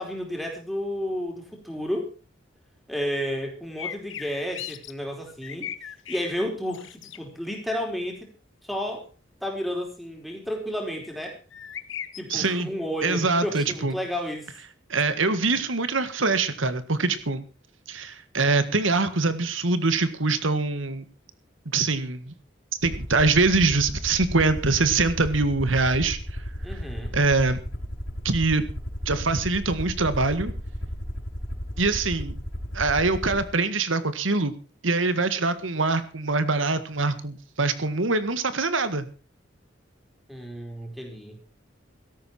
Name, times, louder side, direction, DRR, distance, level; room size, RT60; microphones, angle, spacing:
voice 1, 0.0-2.1 2.9-5.7 6.1-8.3 8.6-9.1 9.4-11.4 12.2-14.5 26.6-27.1 40.3-41.4, equal, ahead, 2 dB, 4.4 m, -31 dB
sound 1, 3.8-4.9 5.3-6.3 6.7-7.2 11.5-12.4, left 10 dB, 85° left, 1.1 m, -37 dB
voice 2, 12.3-12.7 13.0-13.9 14.9-17.4 17.9-21.0 21.6-22.3 22.8-26.2 27.1-27.6 28.2-28.7 29.0-30.5 31.8-32.3 32.7-34.5 34.8-39.1, right 3 dB, 90° right, 12 dB, 1.8 m, -24 dB
Aircraft, 22.8-33.5, equal, 60° left, 4.9 m, -34 dB
17.0 x 13.5 x 4.4 m, 0.34 s
head